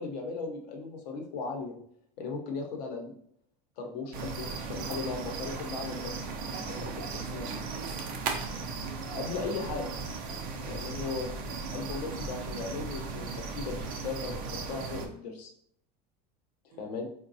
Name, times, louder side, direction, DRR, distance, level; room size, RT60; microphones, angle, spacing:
voice 1, 0.0-1.8 2.2-3.1 3.8-6.3 6.8-6.9 7.3-7.4 9.1-9.9 10.7-11.3 11.7-14.4 14.7-15.5 16.8-17.1, left 4 dB, 85° left, 1 dB, 0.8 m, -37 dB
sound 1, 4.1-15.1, right 4 dB, 45° right, 0.5 m, -37 dB
voice 2, 6.5-8.1 10.3-10.5 16.7-17.0, right 5 dB, 85° right, 3 dB, 0.7 m, -48 dB
sound 2, 9.3-15.0, left 1 dB, 10° left, 0.4 m, -47 dB
3.8 x 2.2 x 2.6 m, 0.66 s
supercardioid pair, 135°, 20 cm